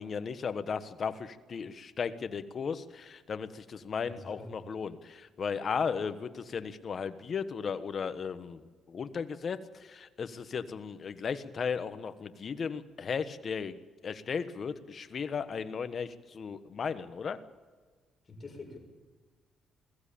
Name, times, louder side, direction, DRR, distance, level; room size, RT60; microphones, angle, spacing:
voice 1, 0.0-8.6 8.9-17.4, left 6 dB, 50° left, 11 dB, 1.4 m, -36 dB
voice 2, 4.1-4.5 18.3-18.8, left 3 dB, 30° left, 2 dB, 6.5 m, -45 dB
21.5 x 15.5 x 8.7 m, 1.4 s
cardioid pair, 90°, 0 cm